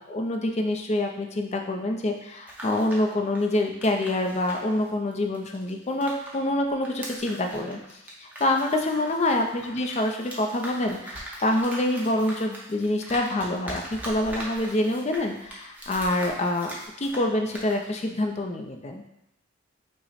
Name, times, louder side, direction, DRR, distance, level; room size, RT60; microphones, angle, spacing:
voice 1, 0.0-16.7 17.0-19.0, left 1 dB, 30° left, 4 dB, 0.4 m, -26 dB
sound 1, 2.5-6.4 6.7-17.3 17.5-17.8, right 1 dB, 10° right, 0.6 m, -41 dB
5.5 x 2.1 x 4.1 m, 0.87 s
head